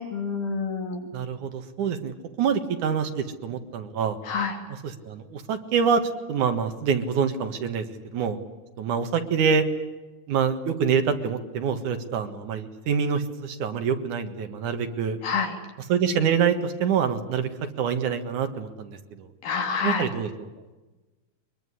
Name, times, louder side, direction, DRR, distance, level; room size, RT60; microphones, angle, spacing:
voice 1, 0.0-1.1 4.3-4.6 15.2-15.6 19.4-20.1, left 5 dB, 80° left, 4 dB, 4.5 m, -28 dB
voice 2, 1.1-4.2 4.7-6.0 6.3-7.9 8.1-8.4 8.8-9.7 10.3-15.2 15.9-17.5 17.8-19.0 19.8-20.3, right 6 dB, 75° right, 7 dB, 3.1 m, -26 dB
23.0 x 22.5 x 9.9 m, 1.2 s
omnidirectional pair, 3.5 m